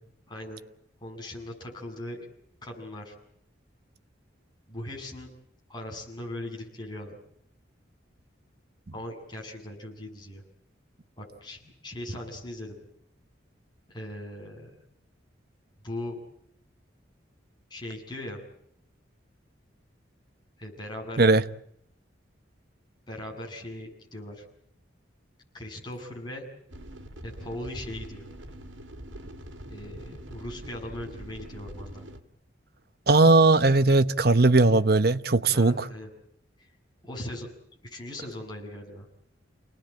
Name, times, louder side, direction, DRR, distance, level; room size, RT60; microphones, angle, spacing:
voice 1, 0.3-0.6 1.0-2.3 2.6-3.1 4.7-5.3 5.7-7.2 8.9-10.4 11.2-12.8 13.9-14.7 15.8-16.2 17.7-18.4 20.6-21.2 23.1-24.4 25.5-26.4 27.2-28.2 29.7-32.0 35.5-36.1 36.6-36.7 37.0-37.5 37.8-39.1, left 1 dB, 20° left, 7.7 m, -39 dB
sound 1, 26.7-32.2, right 1 dB, 80° right, 2.7 m, -43 dB
voice 2, 33.1-35.9, right 3 dB, 50° right, 1.0 m, -19 dB
29.5 x 19.5 x 8.9 m
head